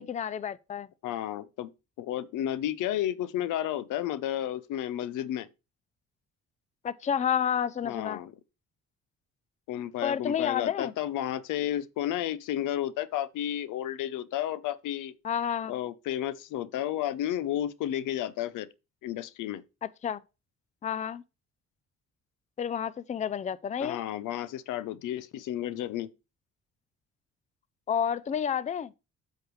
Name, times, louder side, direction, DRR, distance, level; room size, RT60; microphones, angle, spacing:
voice 1, 0.0-0.9 6.8-8.2 10.0-10.9 15.2-15.7 19.8-20.2 20.8-21.2 22.6-24.0 27.9-28.9, left 8 dB, 25° left, 0.4 m, -30 dB
voice 2, 1.0-1.7 2.0-5.5 7.8-8.3 9.7-15.1 15.7-18.7 19.0-19.6 23.8-26.1, left 12 dB, 85° left, 0.7 m, -32 dB
7.9 x 6.6 x 3.1 m
cardioid pair, 90°, 30 cm